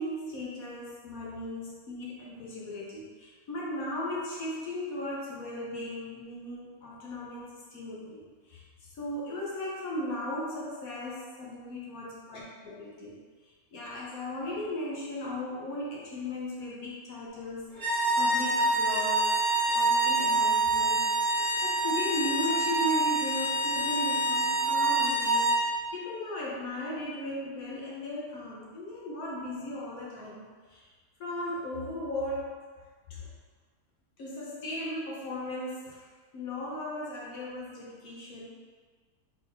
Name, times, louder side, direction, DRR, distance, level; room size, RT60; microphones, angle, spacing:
voice 1, 0.0-8.6 8.9-13.2 13.7-19.4 19.7-21.4 21.6-30.4 30.7-30.9 31.2-32.6 33.1-33.3 34.2-38.5, left 1 dB, 75° left, -5 dB, 1.2 m, -37 dB
sound 1, 17.7-25.6, right 2 dB, 15° right, 0.9 m, -26 dB
3.9 x 3.7 x 2.6 m, 1.5 s
omnidirectional pair, 1.5 m